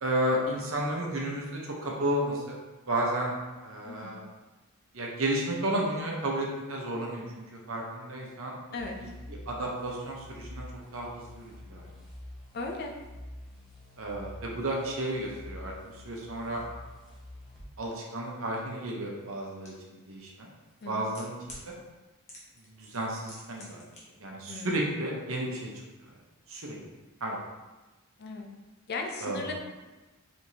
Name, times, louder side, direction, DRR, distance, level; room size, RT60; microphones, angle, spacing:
voice 1, 0.0-2.6 2.9-3.3 3.6-4.2 4.9-8.6 9.0-9.1 9.5-10.7 10.9-11.9 14.0-16.6 17.8-20.5 20.9-21.4 21.7-21.8 22.7-23.8 24.2-25.7 26.5-26.8 27.2-27.4 29.2-29.5, right 1 dB, 65° right, -2 dB, 0.9 m, -32 dB
voice 2, 3.8-4.2 8.7-9.0 12.5-12.9 20.8-21.0 24.5-24.7 28.2-28.5 28.9-29.5, left 3 dB, 45° left, 2 dB, 0.5 m, -36 dB
sound 1, 8.8-17.7, left 1 dB, ahead, 1.0 m, -47 dB
sound 2, 19.6-19.7 20.7-21.6 22.3-22.7 22.9-24.0 24.3-24.4, left 1 dB, 30° left, 1.1 m, -47 dB
4.8 x 3.5 x 2.8 m, 1.1 s
head